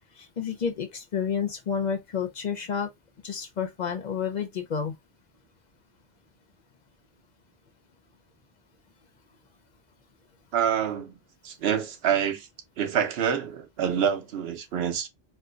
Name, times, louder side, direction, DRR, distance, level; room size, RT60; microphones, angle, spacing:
voice 1, 0.2-2.9 3.2-5.0, left 7 dB, 50° left, 0.6 m, -30 dB
voice 2, 10.5-11.2 11.4-12.5 12.8-15.1, right 8 dB, 75° right, 0.9 m, -26 dB
4.3 x 2.2 x 2.4 m
omnidirectional pair, 1.0 m